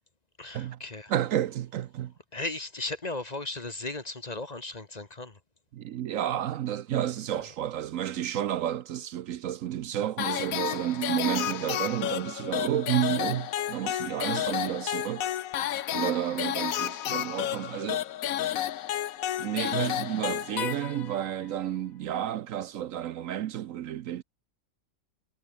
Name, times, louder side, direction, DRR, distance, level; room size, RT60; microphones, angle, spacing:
voice 1, 0.4-1.1 2.3-5.3, left 2 dB, 30° left, 1.5 m, -36 dB
voice 2, 1.1-2.1 5.7-15.3 15.9-18.0 19.4-24.2, right 11 dB, 70° right, 1.0 m, -31 dB
sound 1, 10.2-21.3, left 11 dB, 75° left, 1.2 m, -31 dB
omnidirectional pair, 1.5 m